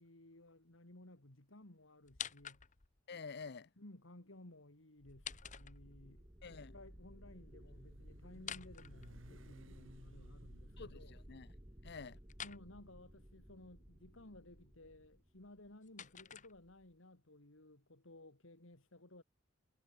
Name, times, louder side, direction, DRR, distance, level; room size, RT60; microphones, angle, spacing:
voice 1, 0.0-2.6 3.8-6.3 6.6-11.2 12.4-19.2, left 1 dB, 70° left, 2.9 m, -58 dB
sound 1, 2.0-3.0 5.0-6.2 8.3-9.7 12.3-12.6 15.4-17.0, left 9 dB, 40° left, 1.1 m, -49 dB
voice 2, 3.1-3.7 6.4-6.7 10.8-11.5 11.8-12.2, left 5 dB, 55° left, 0.7 m, -49 dB
sound 2, 5.1-15.7, equal, 20° right, 2.3 m, -57 dB
Motorcycle, 5.9-14.1, right 1 dB, 70° right, 3.2 m, -64 dB
head